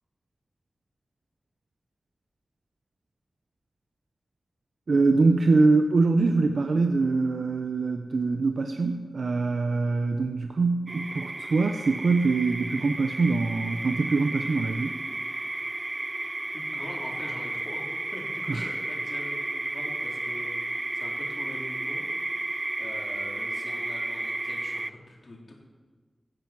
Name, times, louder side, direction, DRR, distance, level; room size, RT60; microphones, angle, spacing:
voice 1, 4.9-15.0 18.5-18.7, right 3 dB, 90° right, 5 dB, 0.7 m, -24 dB
sound 1, 10.9-24.9, right 2 dB, 30° right, 0.3 m, -33 dB
voice 2, 16.5-22.0 22.8-25.5, left 1 dB, 55° left, -2 dB, 3.8 m, -43 dB
15.5 x 10.0 x 6.0 m, 1.4 s
wide cardioid pair, 70°, 0 cm